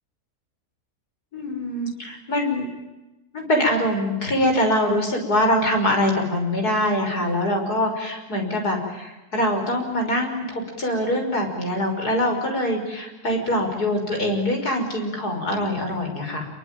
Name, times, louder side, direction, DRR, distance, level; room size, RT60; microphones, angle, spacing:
voice 1, 1.3-2.7 3.3-16.5, left 1 dB, 70° left, 3 dB, 6.5 m, -23 dB
27.0 x 23.5 x 9.1 m, 1.1 s
omnidirectional pair, 1.7 m